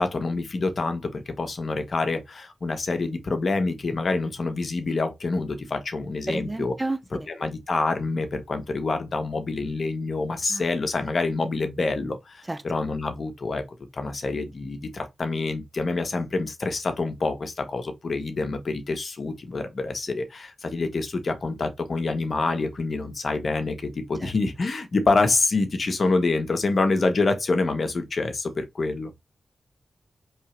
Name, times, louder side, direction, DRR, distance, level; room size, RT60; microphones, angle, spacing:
voice 1, 0.0-6.7 7.4-13.6 13.9-29.1, left 3 dB, 60° left, 1.1 m, -26 dB
voice 2, 6.3-7.3 10.5-10.6 12.5-12.6 24.2-24.3, right 2 dB, 25° right, 0.6 m, -31 dB
4.5 x 3.3 x 3.0 m
cardioid pair, 50°, 0 cm